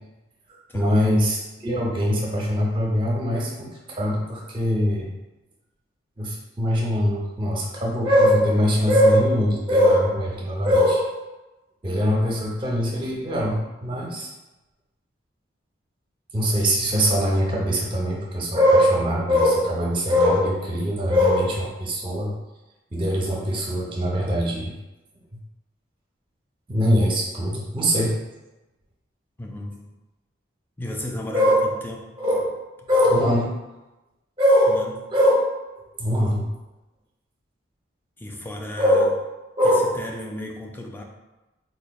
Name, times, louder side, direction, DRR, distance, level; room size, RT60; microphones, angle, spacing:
voice 1, 0.7-5.1 6.2-11.1 11.8-14.3 16.3-22.3 22.9-24.7 26.7-28.2 31.3-31.6 32.2-32.6 32.9-33.5 34.4-34.8 35.1-35.4 35.9-36.4 38.8-39.0 39.6-40.0, equal, 25° right, -2 dB, 0.7 m, -21 dB
voice 2, 29.4-29.9 30.8-32.1 34.7-35.1 38.2-39.1 39.6-41.0, left 1 dB, 10° left, 1 dB, 0.3 m, -34 dB
4.1 x 3.0 x 2.3 m, 1.0 s
head